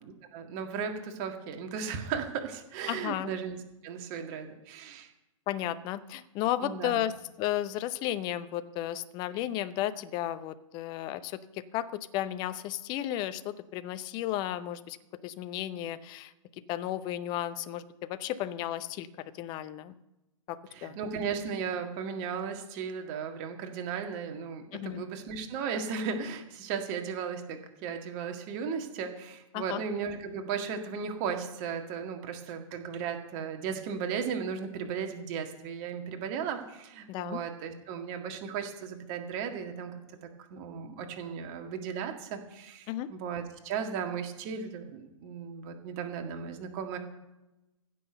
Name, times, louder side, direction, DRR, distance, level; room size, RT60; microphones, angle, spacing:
voice 1, 0.3-5.1 6.6-7.0 20.7-47.0, right 6 dB, 30° right, 5 dB, 1.8 m, -36 dB
voice 2, 2.9-3.3 5.5-7.1 7.4-15.0 15.2-16.3 16.7-19.1 19.3-19.9 20.5-21.0 24.7-25.0 29.5-29.8 37.1-37.4 42.9-43.1, left 13 dB, 25° left, 13 dB, 0.7 m, -33 dB
15.5 x 6.3 x 6.8 m, 0.96 s
figure-of-eight pair, 115°, 17 cm